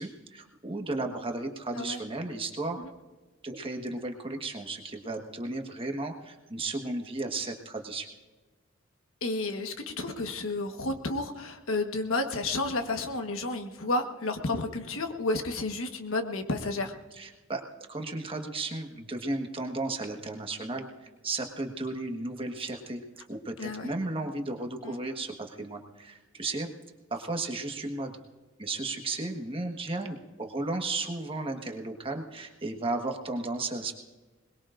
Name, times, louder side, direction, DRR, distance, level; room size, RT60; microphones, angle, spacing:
voice 1, 0.0-2.8 3.4-8.1 17.1-17.6 17.9-23.0 23.3-26.7 27.1-28.2 28.6-33.9, right 2 dB, 25° right, 3 dB, 1.4 m, -34 dB
voice 2, 9.2-16.9 23.6-23.9 24.8-25.0, left 2 dB, 75° left, 6 dB, 1.4 m, -31 dB
22.0 x 21.0 x 2.6 m, 1.2 s
head